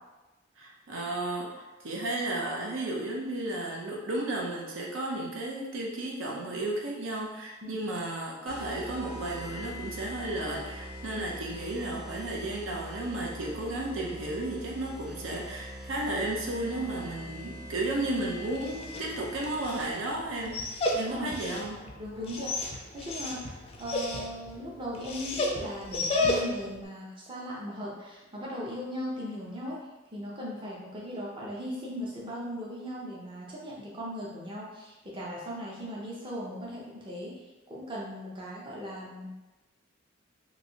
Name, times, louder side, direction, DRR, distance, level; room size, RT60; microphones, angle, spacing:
voice 1, 0.6-21.8, right 2 dB, 80° right, -1 dB, 0.6 m, -33 dB
sound 1, 8.5-19.8, equal, 45° right, 1.1 m, -43 dB
Dog, 18.5-26.8, left 2 dB, 30° left, 0.3 m, -33 dB
voice 2, 21.0-21.3 22.0-29.8 30.1-37.3 37.7-39.3, equal, 25° right, -5 dB, 0.6 m, -38 dB
3.0 x 2.6 x 2.7 m, 1.1 s
head